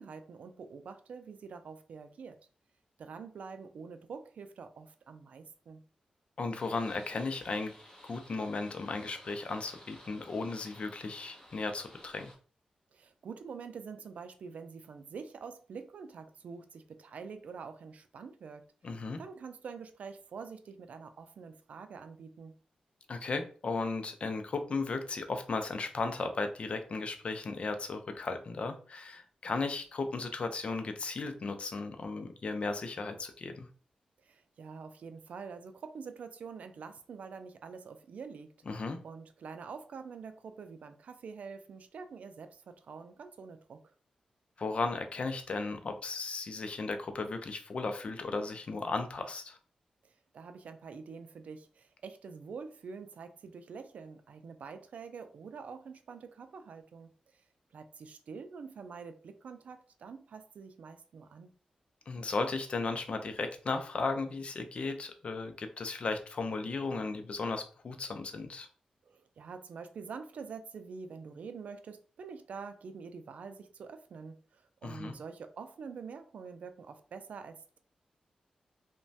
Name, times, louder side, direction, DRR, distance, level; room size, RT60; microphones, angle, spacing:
voice 1, 0.0-2.4 3.0-5.8 12.9-22.6 34.2-38.5 39.0-43.8 50.0-57.1 57.7-61.5 69.0-77.8, right 5 dB, 70° right, 8 dB, 0.3 m, -46 dB
voice 2, 6.4-7.7 8.1-12.3 18.8-19.2 23.1-33.7 38.7-39.0 44.6-49.6 62.1-68.7 74.8-75.1, left 3 dB, 50° left, 7 dB, 0.4 m, -35 dB
sound 1, 6.5-12.3, left 1 dB, 25° left, 1.2 m, -55 dB
3.0 x 2.2 x 2.6 m, 0.42 s
cardioid pair, 85°, 2 cm